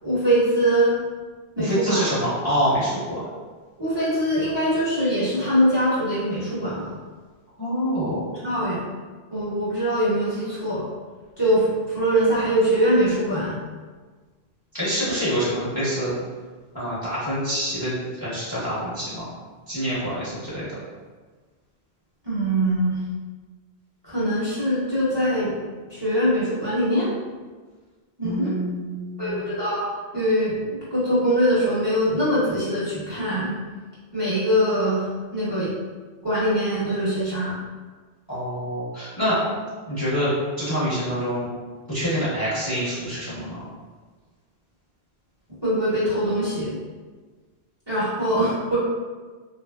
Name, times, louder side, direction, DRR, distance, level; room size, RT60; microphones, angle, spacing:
voice 1, 0.0-0.9 1.6-2.1 3.8-6.9 8.4-8.8 9.3-10.8 11.4-13.6 22.2-23.0 24.0-25.5 25.9-27.1 28.2-28.5 29.2-29.9 30.1-33.6 34.1-35.0 35.3-35.7 36.2-37.5 45.6-46.8 47.9-48.8, equal, 25° right, -11 dB, 0.8 m, -22 dB
voice 2, 1.6-3.2 7.6-8.2 14.7-16.1 16.7-19.3 19.7-20.7 28.2-29.4 38.3-39.4 39.9-40.3 40.6-41.5 41.9-43.6, equal, 25° left, -10 dB, 0.7 m, -26 dB
3.0 x 2.5 x 2.2 m, 1.4 s
omnidirectional pair, 1.1 m